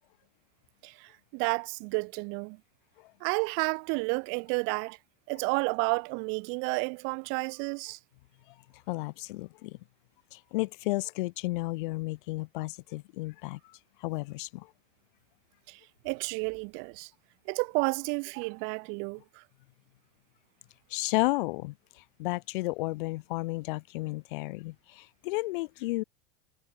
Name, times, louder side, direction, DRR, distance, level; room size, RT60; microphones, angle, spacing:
voice 1, 0.8-2.6 3.2-5.0 5.3-8.0 15.7-17.1 17.5-19.4, right 37 dB, 40° right, 1.8 m, -31 dB
voice 2, 8.9-9.8 10.3-13.6 14.0-14.7 20.9-26.0, left 21 dB, 60° left, 3.9 m, -33 dB
supercardioid pair, 170°, 29 cm